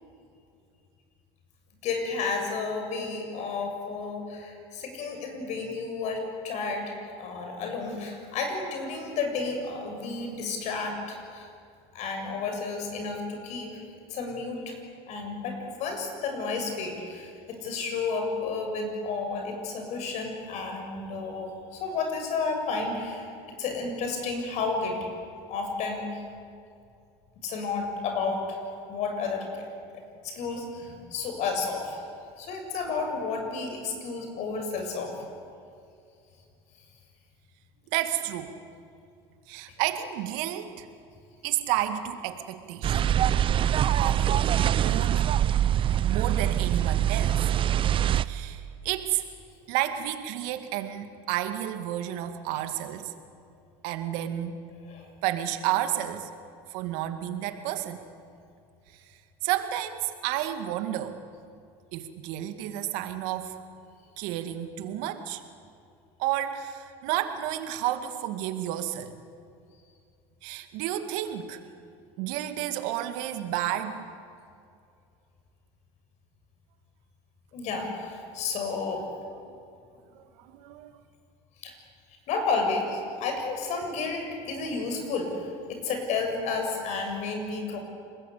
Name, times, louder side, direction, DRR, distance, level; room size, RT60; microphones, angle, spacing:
voice 1, 1.8-11.5 11.9-13.8 14.1-14.8 15.1-23.3 23.6-25.0 25.5-26.2 27.4-28.6 28.9-29.7 30.2-32.1 32.4-35.1 54.9-55.1 77.5-79.0 81.6-81.7 82.3-87.8, left 4 dB, 55° left, 4 dB, 7.2 m, -31 dB
voice 2, 37.9-38.5 39.5-40.9 41.4-43.1 44.0-44.4 44.8-45.3 46.1-47.5 48.2-49.2 49.7-53.1 53.8-54.6 55.2-56.3 56.7-58.0 59.4-61.2 61.9-63.6 64.2-65.4 66.2-69.1 70.4-71.6 72.2-74.0 80.1-80.9, right 12 dB, 70° right, 8 dB, 2.2 m, -31 dB
sound 1, 42.8-48.2, right 10 dB, 40° right, 0.7 m, -24 dB
29.0 x 20.5 x 8.5 m, 2.4 s
supercardioid pair, 95°, 14 cm